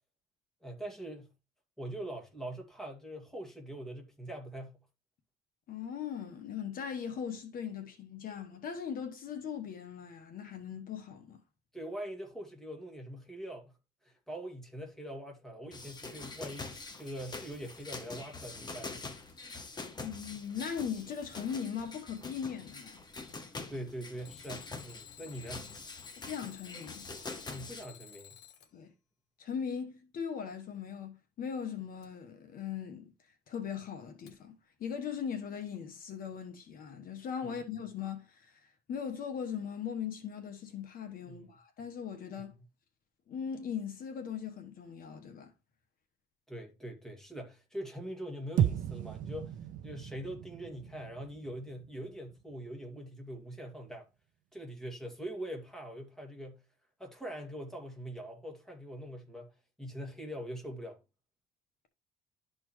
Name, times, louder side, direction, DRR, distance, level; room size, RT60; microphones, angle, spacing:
voice 1, 0.6-1.3 1.8-4.8 11.7-13.7 14.0-19.1 23.7-25.7 27.5-28.4 37.4-37.6 41.3-41.5 42.4-42.6 46.5-49.6 49.8-54.1 54.5-56.6 57.0-59.5 59.8-61.0, right 1 dB, 5° left, 2.3 m, -43 dB
voice 2, 5.7-11.4 20.0-23.0 26.2-27.1 28.7-28.9 29.4-33.1 33.5-42.5 43.3-45.5, left 7 dB, 60° left, 1.2 m, -39 dB
sound 1, 15.7-27.8, left 3 dB, 25° left, 1.0 m, -45 dB
Alarm, 19.0-19.8 20.4-21.8 24.2-28.7 32.0-32.1 34.3-34.4, left 10 dB, 85° left, 1.4 m, -54 dB
sound 2, 48.6-52.9, right 10 dB, 50° right, 0.5 m, -35 dB
12.0 x 4.4 x 3.2 m
cardioid pair, 110°, 17 cm